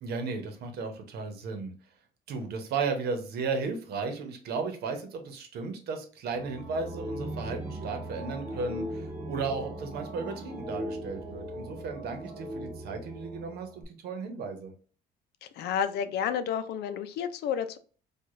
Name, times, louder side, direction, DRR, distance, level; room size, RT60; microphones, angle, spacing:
voice 1, 0.0-1.7 2.3-14.7, right 4 dB, 70° right, 5 dB, 0.9 m, -35 dB
sound 1, 6.3-13.8, right 1 dB, 10° right, 1.4 m, -39 dB
voice 2, 15.4-17.8, left 8 dB, 75° left, 11 dB, 0.5 m, -31 dB
4.7 x 2.4 x 2.5 m, 0.41 s
cardioid pair, 110°, 17 cm